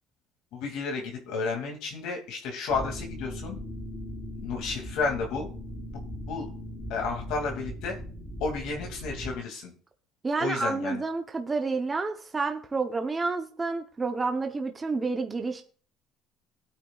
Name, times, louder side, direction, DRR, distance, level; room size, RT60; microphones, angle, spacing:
voice 1, 0.5-3.6 4.4-5.5 6.3-6.5 6.9-8.0 8.4-9.7 10.4-11.0, left 4 dB, 75° left, 1 dB, 2.4 m, -32 dB
sound 1, 2.7-9.4, equal, 5° left, 3.4 m, -39 dB
voice 2, 10.2-15.6, right 4 dB, 20° right, 5 dB, 0.8 m, -29 dB
19.0 x 8.8 x 2.4 m, 0.44 s
cardioid pair, 145°, 0 cm